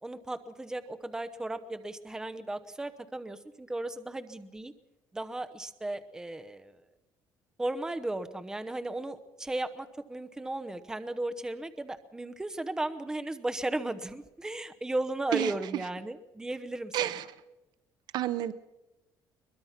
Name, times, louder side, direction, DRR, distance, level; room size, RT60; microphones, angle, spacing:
voice 1, 0.0-4.7 5.1-6.8 7.6-17.1, right 2 dB, 10° right, 9 dB, 0.9 m, -35 dB
voice 2, 16.9-17.2 18.1-18.5, right 13 dB, 65° right, 15 dB, 0.7 m, -29 dB
22.5 x 21.0 x 5.8 m, 1.0 s
cardioid pair, 160°, 8 cm